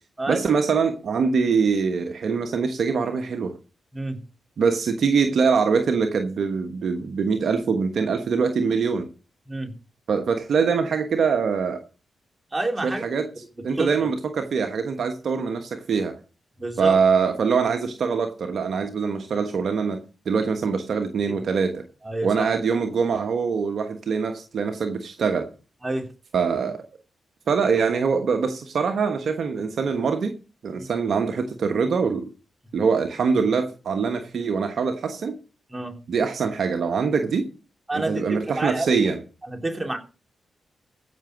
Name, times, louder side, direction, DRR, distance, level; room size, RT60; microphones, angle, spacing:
voice 1, 0.3-3.5 4.6-9.1 10.1-11.8 12.8-13.3 13.6-16.2 16.8-21.8 22.2-25.5 26.3-26.8 27.5-30.3 30.6-32.3 32.7-35.4 36.1-37.5 37.9-39.2, right 5 dB, 70° right, 1.1 m, -23 dB
voice 2, 12.5-13.0 13.7-13.9 16.6-17.0 21.3-21.4 22.0-22.5 25.8-26.1 30.8-30.9 35.7-36.0 37.9-39.1 39.5-40.0, right 2 dB, 20° right, 3.2 m, -28 dB
15.5 x 6.2 x 5.1 m
supercardioid pair, 45°, 0 cm